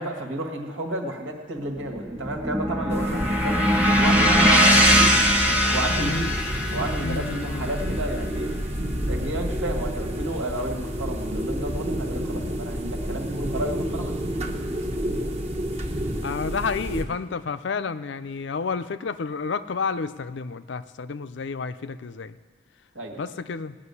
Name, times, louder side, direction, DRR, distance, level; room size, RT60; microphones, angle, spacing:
voice 1, 0.0-3.6 4.0-6.4 6.7-8.5 9.1-15.3 22.9-23.3, right 1 dB, 80° right, 3 dB, 1.9 m, -32 dB
sound 1, 1.8-10.1, equal, 5° right, 1.0 m, -22 dB
sound 2, 2.9-17.0, equal, 35° right, 1.0 m, -30 dB
voice 2, 5.9-6.4 7.0-7.7 16.2-22.4 23.2-23.8, left 5 dB, 65° left, 12 dB, 0.5 m, -30 dB
18.0 x 6.2 x 9.7 m, 1.5 s
head